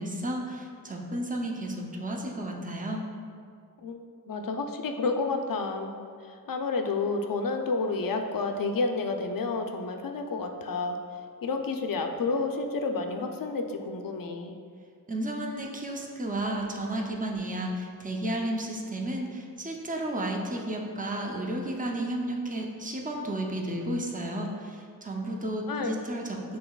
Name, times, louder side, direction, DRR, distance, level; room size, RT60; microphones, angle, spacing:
voice 1, 0.0-3.0 15.1-26.6, right 1 dB, 20° right, 0 dB, 0.6 m, -32 dB
voice 2, 4.3-5.9 6.3-11.0 11.4-14.5 25.7-26.0, left 3 dB, 60° left, 5 dB, 0.5 m, -30 dB
6.9 x 3.1 x 2.3 m, 2.2 s
cardioid pair, 55°, 38 cm